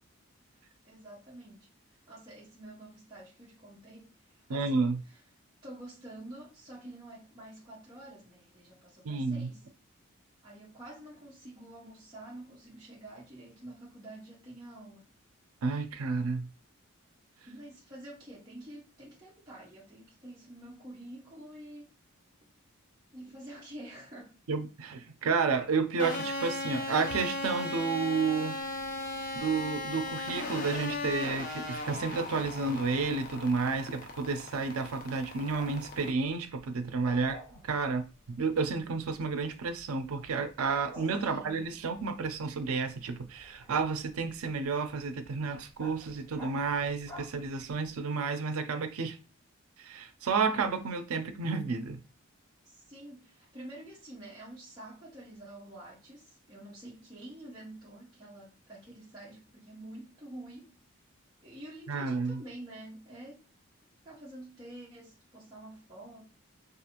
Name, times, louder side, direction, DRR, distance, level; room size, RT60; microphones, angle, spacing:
voice 1, 0.9-1.7 2.1-5.2 5.6-9.7 10.4-15.1 17.5-21.9 23.1-24.4 40.9-41.7 52.6-60.8 61.4-63.5 64.0-66.2, right 1 dB, 20° right, 0.6 m, -48 dB
voice 2, 4.5-5.0 9.0-9.5 15.6-16.5 24.5-28.6 29.3-49.2 49.8-52.0 61.9-62.4, right 4 dB, 85° right, 0.5 m, -31 dB
sound 1, 26.0-36.1, left 2 dB, 40° left, 0.4 m, -37 dB
Bark, 28.6-48.0, equal, 10° left, 1.3 m, -55 dB
2.5 x 2.4 x 2.8 m
head